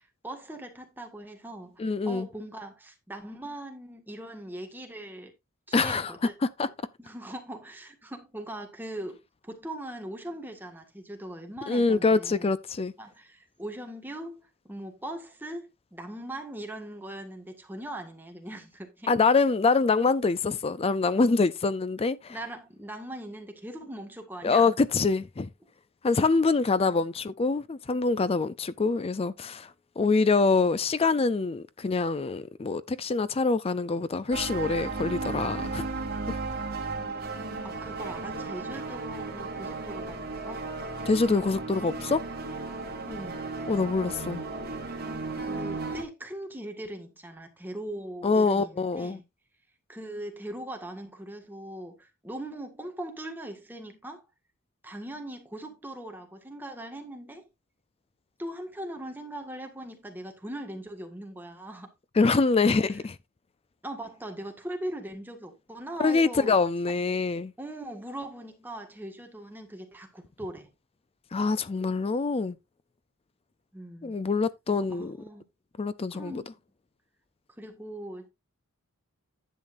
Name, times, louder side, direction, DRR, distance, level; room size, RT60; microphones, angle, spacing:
voice 1, 0.0-5.3 5.7-6.3 6.6-6.7 7.0-12.5 13.0-19.1 22.3-24.7 26.8-27.1 31.3-31.4 36.9-40.7 43.1-43.5 45.3-49.2 49.9-54.3 54.8-57.5 58.4-61.9 62.6-62.7 63.8-66.6 67.6-70.7 73.7-74.1 74.7-75.4 76.1-76.6 77.6-78.3, right 1 dB, 10° right, 1.7 m, -40 dB
voice 2, 1.8-2.3 5.7-6.1 6.6-6.7 11.7-12.9 19.1-22.4 24.4-25.5 26.0-29.7 30.0-35.9 36.3-36.4 41.1-42.2 43.7-44.4 48.2-49.2 62.2-63.2 66.0-67.5 71.3-72.6 74.0-75.2 75.8-76.4, left 4 dB, 25° left, 0.4 m, -25 dB
sound 1, 34.3-46.0, right 3 dB, 45° right, 2.8 m, -35 dB
10.5 x 8.3 x 2.6 m
head